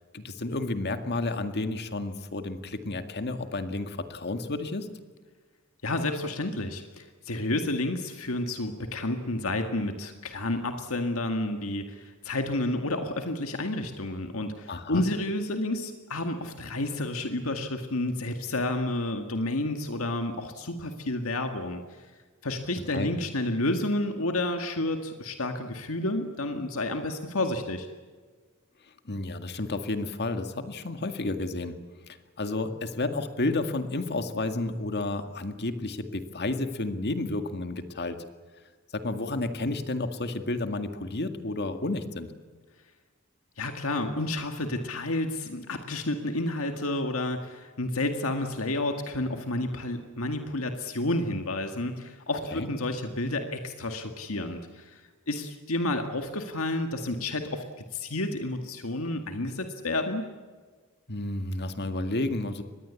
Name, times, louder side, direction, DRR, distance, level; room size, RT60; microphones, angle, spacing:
voice 1, 0.1-4.9 14.7-15.0 22.9-23.1 29.1-31.8 32.1-38.2 38.9-42.3 52.5-52.7 61.1-62.6, left 2 dB, 50° left, 8 dB, 2.0 m, -31 dB
voice 2, 5.8-22.1 22.4-27.9 43.6-55.0 55.3-57.6 57.9-60.3, left 2 dB, 70° left, 5 dB, 2.0 m, -30 dB
25.0 x 20.5 x 8.4 m, 1.5 s
head